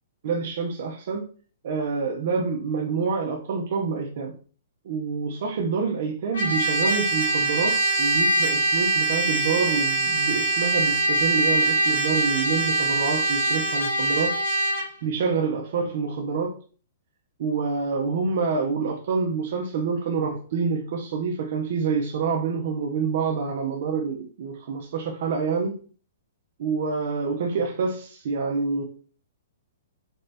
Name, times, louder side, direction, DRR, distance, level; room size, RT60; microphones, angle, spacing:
voice 1, 0.2-1.3 1.6-4.3 4.8-14.4 15.0-16.6 17.4-25.7 26.6-28.8, right 5 dB, 45° right, 0.5 m, -27 dB
Trumpet, 6.3-14.9, right 2 dB, 85° left, 1.7 m, -23 dB
4.3 x 2.7 x 3.3 m
hypercardioid pair, 175°, 0 cm